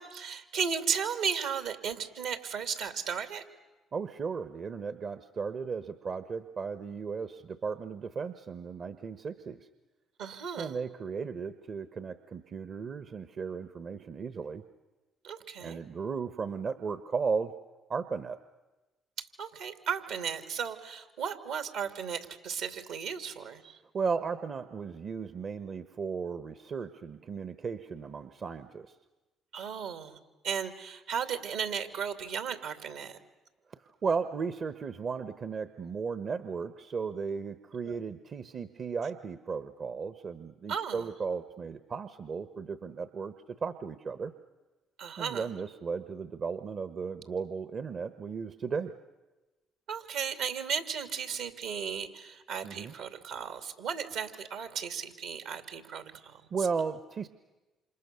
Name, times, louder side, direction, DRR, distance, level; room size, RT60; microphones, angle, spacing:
voice 1, 0.0-3.4 10.2-10.8 15.2-15.8 19.2-23.8 29.5-30.2 30.4-33.2 37.9-38.0 40.7-41.1 45.0-45.5 49.9-56.4, right 7 dB, 75° right, 8 dB, 2.7 m, -35 dB
voice 2, 3.9-9.7 10.6-14.6 15.6-17.5 17.9-18.4 23.9-28.9 33.7-43.3 43.6-44.3 45.2-48.9 52.6-52.9 56.5-57.3, right 5 dB, 50° right, 11 dB, 1.2 m, -35 dB
28.5 x 27.5 x 7.0 m, 1.1 s
hypercardioid pair, 55°, 0 cm